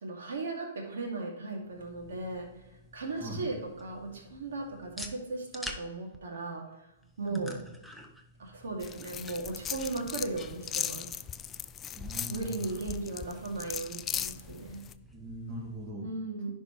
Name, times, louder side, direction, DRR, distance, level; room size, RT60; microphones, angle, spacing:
voice 1, 0.0-2.5 2.9-6.6 7.2-7.6 8.4-11.1 12.3-14.8 16.0-16.5, right 2 dB, 75° right, 0 dB, 2.4 m, -37 dB
sound 1, 1.6-15.9, equal, ahead, 0.8 m, -50 dB
sound 2, 8.8-14.9, left 9 dB, 20° left, 0.3 m, -38 dB
voice 2, 12.0-12.6 15.1-16.1, right 1 dB, 35° right, -5 dB, 2.2 m, -40 dB
10.5 x 5.2 x 3.1 m, 0.95 s
hypercardioid pair, 130°, 0 cm